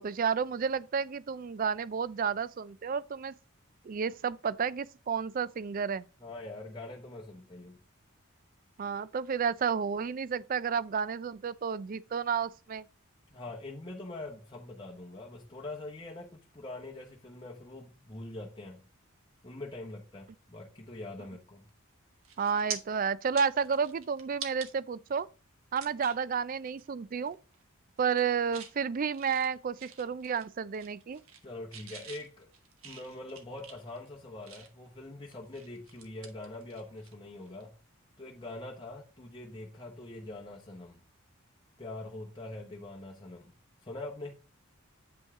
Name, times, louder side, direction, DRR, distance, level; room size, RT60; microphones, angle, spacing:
voice 1, 0.0-3.3 3.8-6.0 8.8-12.8 22.4-25.3 25.7-27.4 28.0-31.2, right 6 dB, 40° right, 0.3 m, -31 dB
voice 2, 6.2-7.8 13.3-18.8 19.4-21.7 31.4-32.5 32.8-37.8 38.2-41.0 41.8-43.5 43.8-44.4, left 2 dB, 25° left, 1.0 m, -43 dB
sound 1, 21.7-21.9 22.2-22.8 23.2-24.7 25.2-25.3 25.8-26.3 26.7-26.9 27.2-27.6 28.0-28.7 29.1-30.5 30.7-31.4 31.7-34.9 35.3-37.1 37.4-37.6 39.5-39.7, right 7 dB, 85° right, 1.2 m, -45 dB
8.0 x 5.4 x 3.6 m
head